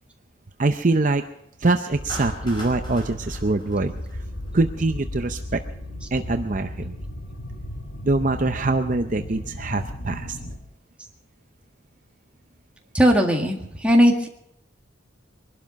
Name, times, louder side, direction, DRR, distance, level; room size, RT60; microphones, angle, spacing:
voice 1, 0.6-1.2 1.6-3.9 4.5-5.6 6.1-7.0 8.0-10.4, right 2 dB, 40° right, 7 dB, 0.6 m, -23 dB
sound 1, 1.9-10.6, left 1 dB, 80° left, 3.6 m, -35 dB
Clapping, 2.1-4.5, equal, 25° left, 4.7 m, -40 dB
voice 2, 12.9-14.3, equal, 5° right, 1 dB, 1.8 m, -18 dB
22.5 x 12.0 x 5.3 m, 0.75 s
head